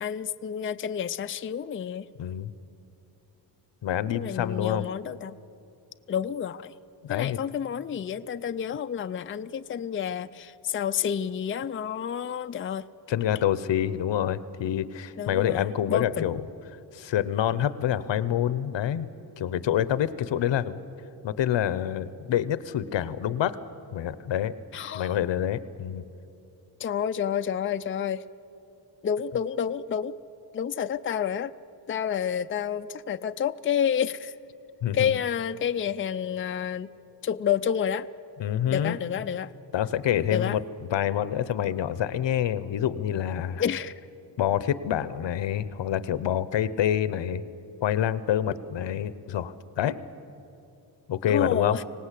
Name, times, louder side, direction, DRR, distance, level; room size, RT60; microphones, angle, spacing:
voice 1, 0.0-2.1 4.1-5.4 6.1-6.7 7.1-12.8 15.2-16.3 24.7-25.1 26.8-28.2 29.0-30.1 30.5-31.5 31.9-34.3 34.9-36.9 37.2-38.1 38.7-39.5 40.3-40.6 43.6-43.9 51.3-51.8, left 8 dB, 30° left, 11 dB, 0.4 m, -29 dB
voice 2, 2.2-2.5 3.8-4.9 7.0-7.4 13.1-16.4 16.9-19.1 19.4-20.8 21.2-23.6 23.9-24.6 24.9-26.0 34.8-35.1 38.4-39.0 39.7-40.6 40.9-43.6 44.4-47.4 47.8-50.0 51.1-51.8, left 10 dB, 90° left, 15 dB, 0.9 m, -27 dB
25.5 x 18.5 x 8.3 m, 2.8 s
wide cardioid pair, 130°, 43 cm